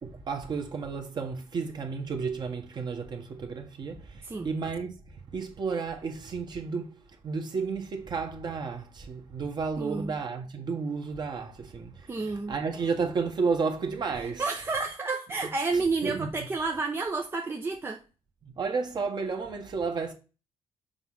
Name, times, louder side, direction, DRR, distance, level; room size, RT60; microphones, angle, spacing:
voice 1, 0.0-4.9 5.3-14.4 15.7-16.5 18.4-20.1, right 5 dB, 40° right, 1.7 m, -32 dB
voice 2, 9.8-10.2 12.1-12.5 14.4-18.0, right 3 dB, 20° right, 0.8 m, -30 dB
7.1 x 3.1 x 5.7 m
cardioid pair, 120°, 12 cm